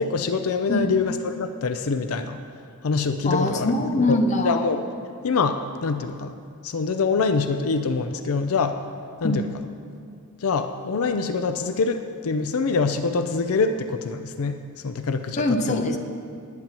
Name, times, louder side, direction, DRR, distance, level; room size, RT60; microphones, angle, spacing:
voice 1, 0.0-2.4 2.8-3.7 4.1-4.2 4.4-4.8 5.2-6.3 6.6-8.8 9.2-9.5 10.4-15.8, left 4 dB, 70° left, 8 dB, 0.5 m, -25 dB
voice 2, 3.2-4.7 9.2-9.6 15.4-16.0, left 1 dB, 35° left, 5 dB, 0.7 m, -23 dB
18.5 x 9.1 x 3.0 m, 2.3 s
head